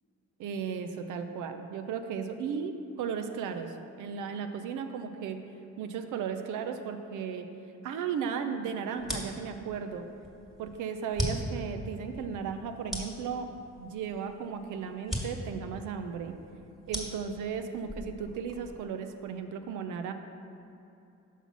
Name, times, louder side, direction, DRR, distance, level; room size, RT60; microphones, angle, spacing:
voice 1, 0.4-2.7 3.0-5.4 5.8-7.5 7.8-10.1 10.6-13.5 13.8-16.3 16.9-20.1, right 6 dB, 85° right, 7 dB, 0.6 m, -35 dB
sound 1, 9.0-18.9, equal, ahead, 1.7 m, -39 dB
5.7 x 5.5 x 6.1 m, 2.8 s
cardioid pair, 90°, 30 cm